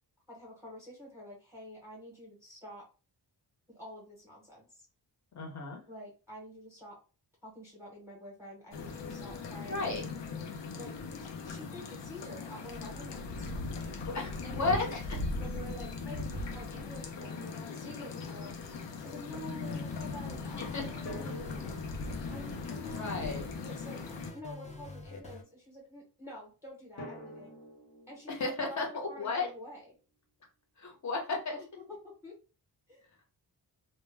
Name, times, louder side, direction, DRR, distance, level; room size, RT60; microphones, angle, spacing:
voice 1, 0.3-2.8 3.7-4.9 5.9-7.0 7.4-10.0 10.8-10.9 11.4-13.5 14.4-14.9 15.4-18.5 19.0-21.7 22.3-24.0 24.3-27.6 28.1-29.9 31.5-31.7 32.0-32.4 32.9-33.0, equal, 5° right, -2 dB, 0.7 m, -48 dB
voice 2, 5.3-5.8 9.7-10.0 14.0-15.0 20.6-20.8 23.0-23.5 25.1-25.2 28.3-29.5 30.8-31.5, left 3 dB, 40° left, 1 dB, 0.7 m, -33 dB
sound 1, 8.7-24.3, left 4 dB, 90° left, 0.6 m, -39 dB
Drum, 17.2-18.6 21.1-24.0 27.0-29.8, equal, 70° left, 1.0 m, -50 dB
sound 2, 19.6-25.4, left 2 dB, 20° left, 0.3 m, -47 dB
2.1 x 2.0 x 3.2 m, 0.35 s
wide cardioid pair, 170°, 42 cm